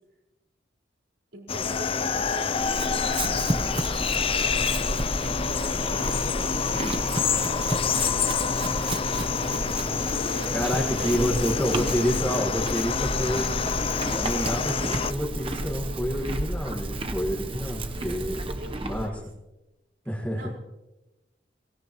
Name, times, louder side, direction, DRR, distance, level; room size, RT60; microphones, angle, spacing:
voice 1, 1.3-3.6 5.4-7.7 9.1-9.5 10.0-12.6 17.9-19.2 20.3-20.5, right 1 dB, 65° right, -1 dB, 4.8 m, -42 dB
sound 1, 1.5-15.1, left 6 dB, 30° left, 0.4 m, -27 dB
Chewing mastication / Livestock farm animals working animals, 2.5-19.1, right 1 dB, 30° right, 0.9 m, -32 dB
voice 2, 10.5-13.4 14.1-18.4 18.8-19.1 20.1-20.4, equal, 10° left, -3 dB, 1.7 m, -28 dB
23.5 x 18.5 x 3.1 m, 1.0 s
head